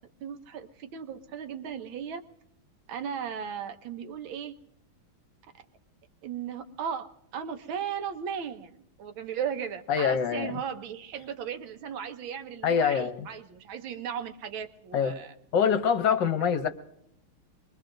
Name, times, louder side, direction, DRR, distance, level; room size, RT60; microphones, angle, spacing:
voice 1, 0.2-2.2 2.9-4.5 6.2-15.3, right 8 dB, 75° right, 8 dB, 1.6 m, -36 dB
voice 2, 9.9-10.5 12.6-13.3 14.9-15.1 15.5-16.7, left 7 dB, 65° left, 8 dB, 1.3 m, -25 dB
25.0 x 21.5 x 2.6 m, 0.79 s
omnidirectional pair, 2.3 m